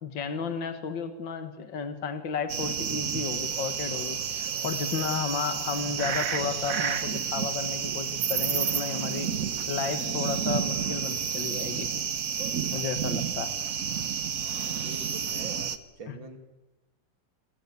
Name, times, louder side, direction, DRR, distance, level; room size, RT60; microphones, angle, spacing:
voice 1, 0.0-9.3 9.7-11.9 12.7-13.5 16.1-16.2, left 6 dB, 70° left, 8 dB, 2.3 m, -33 dB
sound 1, 2.5-15.8, right 7 dB, 50° right, 1.5 m, -30 dB
voice 2, 14.8-16.4, right 3 dB, 70° right, 6 dB, 3.5 m, -44 dB
28.5 x 23.5 x 8.4 m, 1.1 s
omnidirectional pair, 2.1 m